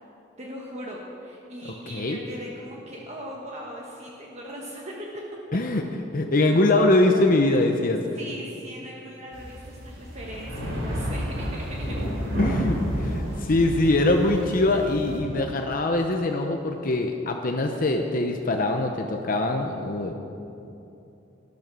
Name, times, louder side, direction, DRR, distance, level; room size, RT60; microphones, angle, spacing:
voice 1, 0.4-5.2 8.1-12.0, equal, 35° right, -2 dB, 1.5 m, -39 dB
voice 2, 5.5-5.8 6.1-8.0 12.4-20.1, left 2 dB, 45° left, 3 dB, 0.8 m, -23 dB
sound 1, 9.3-15.2, equal, 70° right, 3.7 m, -30 dB
13.5 x 12.0 x 6.2 m, 2.8 s
head